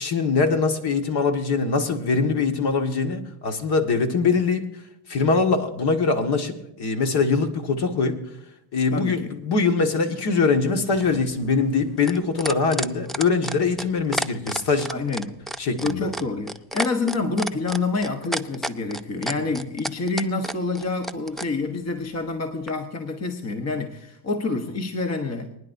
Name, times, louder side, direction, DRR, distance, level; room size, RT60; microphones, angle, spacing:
voice 1, 0.0-4.6 5.1-8.2 8.7-14.9 15.6-16.1 19.3-19.4, left 4 dB, 55° left, 4 dB, 1.9 m, -22 dB
voice 2, 8.9-9.4 14.9-15.4 15.8-25.5, left 3 dB, 35° left, 5 dB, 1.3 m, -27 dB
sound 1, 11.0-21.5 22.7-22.8, equal, ahead, 0.3 m, -30 dB
24.0 x 10.0 x 2.7 m, 0.80 s
supercardioid pair, 90°, 47 cm